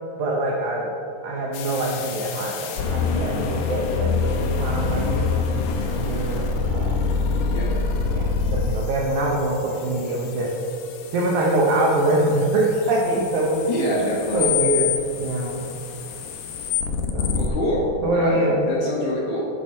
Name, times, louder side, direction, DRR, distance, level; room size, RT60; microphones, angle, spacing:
voice 1, 0.2-0.9 1.2-5.3 6.0-7.1 8.1-10.6 11.1-13.7 14.3-15.8 17.1-17.4 18.0-18.7, right 1 dB, 75° right, -2 dB, 1.7 m, -24 dB
sound 1, 1.5-17.5, left 4 dB, 85° left, 1.8 m, -26 dB
voice 2, 13.7-14.5 17.4-19.5, left 1 dB, 65° left, -3 dB, 2.1 m, -26 dB
8.8 x 7.7 x 5.5 m, 2.7 s
omnidirectional pair, 4.8 m